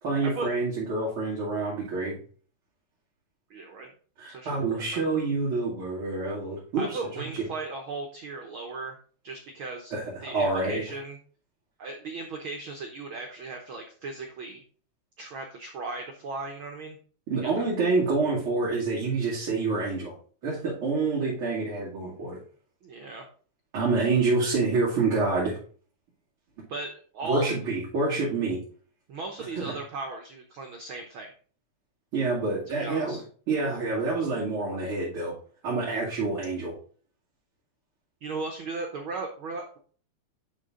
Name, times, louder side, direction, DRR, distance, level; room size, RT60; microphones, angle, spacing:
voice 1, 0.0-2.2 4.2-7.0 7.3-7.4 9.9-10.8 17.3-20.1 20.4-22.4 23.7-25.6 27.2-28.6 29.5-29.7 32.1-33.2 33.5-35.3 35.6-36.7, right 3 dB, 45° right, -7 dB, 3.1 m, -27 dB
voice 2, 3.5-3.9 4.3-5.0 6.8-8.9 9.2-9.9 10.2-11.2 11.8-14.6 15.2-17.0 17.4-17.5 22.8-23.2 26.7-27.5 29.1-31.3 32.8-33.2 38.2-39.8, right 3 dB, 90° right, 3 dB, 1.1 m, -37 dB
11.0 x 3.8 x 3.8 m, 0.43 s
omnidirectional pair, 3.7 m